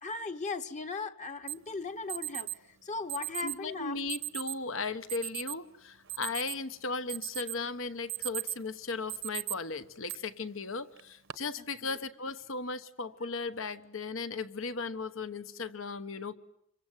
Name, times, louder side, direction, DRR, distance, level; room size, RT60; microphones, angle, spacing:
voice 1, 0.0-4.0 11.6-12.0, left 4 dB, 35° left, 8 dB, 1.2 m, -38 dB
Alarm, 1.5-1.6 2.1-2.6 3.1-3.6 4.1-4.6 5.1-5.6 5.9-6.7 7.1-7.6 7.9-8.7 9.1-9.5 10.1-10.2 11.0-11.3, right 17 dB, 65° right, 1.1 m, -37 dB
voice 2, 3.4-16.3, left 4 dB, 70° left, 12 dB, 1.2 m, -36 dB
27.0 x 23.5 x 9.2 m, 0.72 s
head